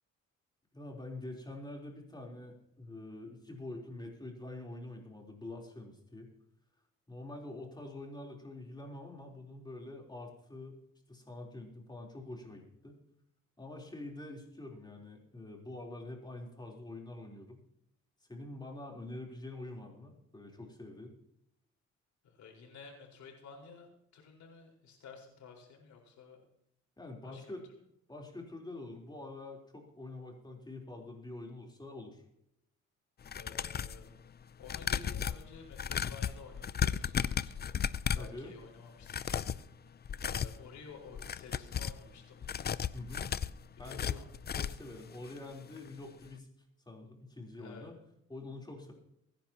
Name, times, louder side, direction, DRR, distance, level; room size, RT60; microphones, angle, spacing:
voice 1, 0.7-6.3 7.1-10.8 11.1-13.0 13.6-17.6 18.3-21.1 27.0-27.6 28.1-32.2 38.2-38.5 42.9-43.3 43.8-46.5 46.9-47.9 48.3-48.9, left 2 dB, 15° left, 0 dB, 3.7 m, -46 dB
voice 2, 22.3-26.4 27.2-27.4 33.3-34.1 34.6-37.8 38.1-39.9 40.2-42.4 43.8-44.2 47.6-47.9, left 5 dB, 70° left, 0 dB, 4.7 m, -52 dB
sound 1, 33.2-34.0 34.6-38.4 39.0-39.6 40.0-40.6 41.1-42.0 42.4-44.9 45.3-45.4 45.7-45.8, left 8 dB, 35° left, 0.5 m, -35 dB
23.0 x 10.5 x 3.0 m, 0.77 s
cardioid pair, 90°, 30 cm